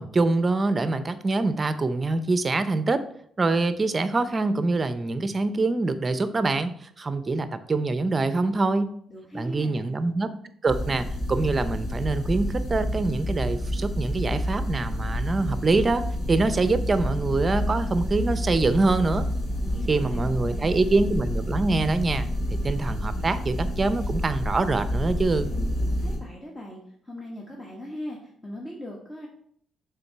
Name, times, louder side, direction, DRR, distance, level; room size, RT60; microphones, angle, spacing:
voice 1, 0.0-3.0 3.4-8.9 9.3-10.3 10.6-19.3 19.9-22.3 22.6-25.5, right 3 dB, 30° right, 12 dB, 0.6 m, -24 dB
voice 2, 9.1-10.0 19.6-20.8 25.8-26.8 27.0-29.3, left 1 dB, 20° left, -2 dB, 1.2 m, -40 dB
sound 1, 10.7-26.2, equal, 60° left, 2.5 m, -29 dB
6.9 x 3.7 x 4.6 m, 0.65 s
cardioid pair, 90°, 0 cm